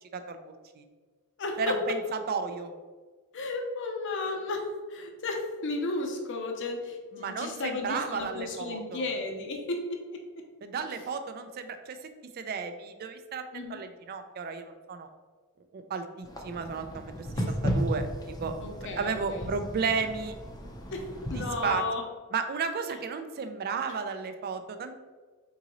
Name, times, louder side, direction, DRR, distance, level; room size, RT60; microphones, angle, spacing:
voice 1, 0.1-0.8 1.6-2.7 7.1-9.1 10.6-12.0 12.3-15.1 15.7-18.5 19.0-20.3 21.3-21.8 22.3-25.0, right 5 dB, 45° right, 8 dB, 0.4 m, -33 dB
voice 2, 1.4-1.8 3.3-10.0 13.5-13.8 17.4-17.5 18.6-19.5 20.9-22.0 23.9-24.0, left 3 dB, 60° left, 3 dB, 0.6 m, -34 dB
sound 1, 16.2-21.7, equal, 15° left, 0.5 m, -34 dB
3.9 x 3.7 x 3.0 m, 1.4 s
head